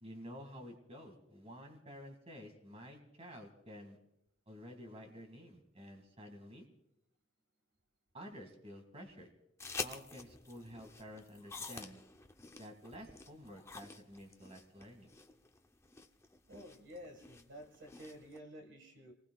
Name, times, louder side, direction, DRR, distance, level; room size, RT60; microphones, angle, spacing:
voice 1, 0.0-4.0 4.5-6.7 8.1-9.3 9.8-12.0 12.6-15.1, equal, 30° right, 4 dB, 2.1 m, -51 dB
sound 1, 9.6-18.4, left 4 dB, 15° left, 0.6 m, -48 dB
voice 2, 16.5-19.1, equal, 60° right, 5 dB, 1.7 m, -51 dB
28.5 x 20.0 x 2.3 m, 0.81 s
head